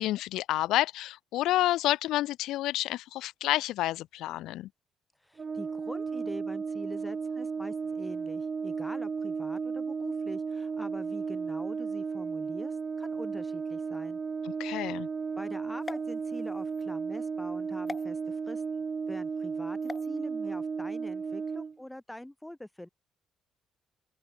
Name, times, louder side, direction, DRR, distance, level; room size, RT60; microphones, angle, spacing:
voice 1, 0.0-4.7 14.4-15.1, left 15 dB, 90° left, 3.2 m, -29 dB
voice 2, 5.2-14.2 15.4-18.6 19.1-22.9, left 1 dB, 5° left, 7.5 m, -44 dB
Brass instrument, 5.4-21.8, right 5 dB, 40° right, 2.1 m, -34 dB
sound 1, 15.8-16.8 17.9-18.0 19.8-20.1, left 3 dB, 25° left, 3.0 m, -42 dB
open air
cardioid pair, 90°, 0 cm